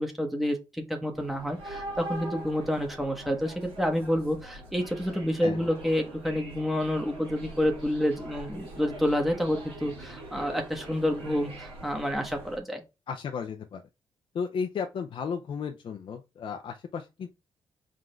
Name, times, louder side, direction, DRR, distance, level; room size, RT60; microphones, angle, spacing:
voice 1, 0.0-12.8, equal, ahead, 1.1 m, -29 dB
sound 1, 1.1-12.6, right 1 dB, 90° right, 2.0 m, -43 dB
voice 2, 13.1-13.8 14.3-17.3, left 6 dB, 60° left, 0.6 m, -34 dB
3.8 x 3.7 x 3.2 m
supercardioid pair, 55°, 10 cm